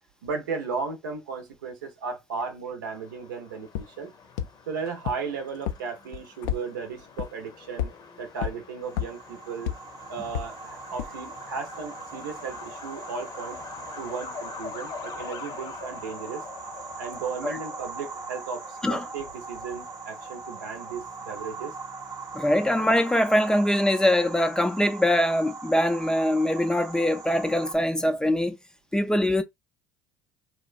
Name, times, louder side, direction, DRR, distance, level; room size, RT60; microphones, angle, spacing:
voice 1, 0.2-4.1 4.7-7.9 8.2-9.7 10.1-13.6 14.0-16.4 17.0-21.7, right 5 dB, 80° right, 0.7 m, -35 dB
Truck, 2.9-22.9, left 6 dB, 40° left, 0.7 m, -45 dB
sound 1, 3.7-3.8 4.4-4.5 5.1-5.2 5.7-5.8 6.1-6.6 7.2-7.3 7.8-7.9 8.4-8.5 9.0-9.1 9.7-9.8 10.3-10.4 11.0-11.1, left 10 dB, 70° left, 0.4 m, -28 dB
sound 2, 8.8-27.8, right 4 dB, 40° right, 0.8 m, -41 dB
voice 2, 22.3-28.6 28.9-29.4, left 1 dB, 5° left, 0.4 m, -23 dB
3.0 x 2.2 x 2.4 m
hypercardioid pair, 65°, 10 cm